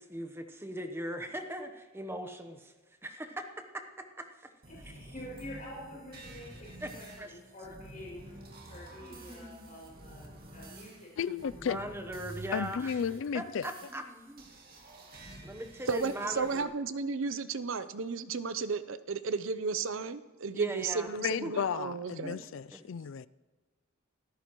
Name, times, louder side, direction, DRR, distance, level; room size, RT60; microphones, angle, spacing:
voice 1, 0.0-2.7 3.0-4.5 6.8-6.9 7.2-7.3 9.0-9.8 11.6-13.0 13.3-14.5 15.4-16.7 20.5-21.1 21.4-21.5 22.2-22.4 22.7-22.8, right 1 dB, 10° right, 0.9 m, -40 dB
sound 1, 4.6-16.6, right 1 dB, 45° right, 2.2 m, -50 dB
voice 2, 4.7-11.1 11.4-11.5, left 1 dB, 35° left, 5.9 m, -47 dB
voice 3, 11.2-12.0 12.5-13.7 21.2-23.3, left 7 dB, 60° left, 0.3 m, -33 dB
voice 4, 15.9-22.4, right 4 dB, 65° right, 0.6 m, -34 dB
25.5 x 13.5 x 3.1 m
head